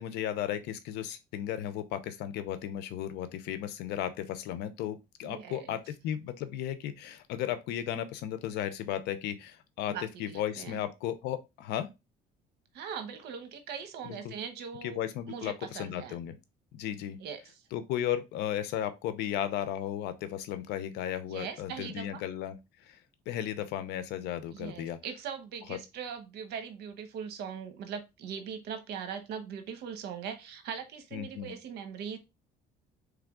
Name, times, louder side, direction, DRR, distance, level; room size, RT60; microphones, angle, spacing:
voice 1, 0.0-11.9 14.0-14.4 14.8-16.3 16.7-17.2 17.7-22.6 22.9-23.0 23.3-25.0 25.7-25.8 31.1-31.5, left 11 dB, 90° left, 0.7 m, -35 dB
voice 2, 5.2-5.8 9.9-10.8 12.7-15.0 15.3-16.2 17.2-17.7 21.3-22.2 24.5-32.2, right 7 dB, 80° right, 0.9 m, -40 dB
3.6 x 3.3 x 3.6 m
cardioid pair, 110°, 17 cm